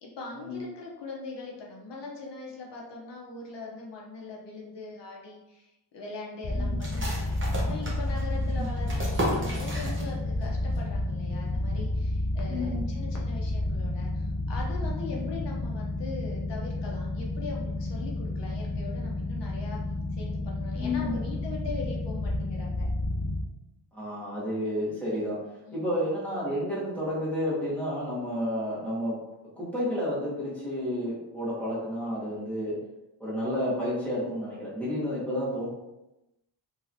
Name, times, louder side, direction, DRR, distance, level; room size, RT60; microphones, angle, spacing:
voice 1, 0.0-7.3 7.6-19.8 20.1-22.9 25.7-25.9, left 3 dB, 80° left, -2 dB, 0.7 m, -41 dB
sound 1, 6.4-23.4, left 2 dB, 45° left, 0.5 m, -31 dB
sound 2, 6.8-10.5 10.7-10.8 11.3-11.7, equal, 30° right, 0.7 m, -34 dB
voice 2, 12.5-12.8 15.1-15.2 20.7-21.2 23.9-25.4 25.7-29.1 29.6-32.8 33.2-35.7, equal, 5° left, -9 dB, 1.3 m, -31 dB
3.0 x 2.8 x 2.6 m, 0.94 s
wide cardioid pair, 140°, 42 cm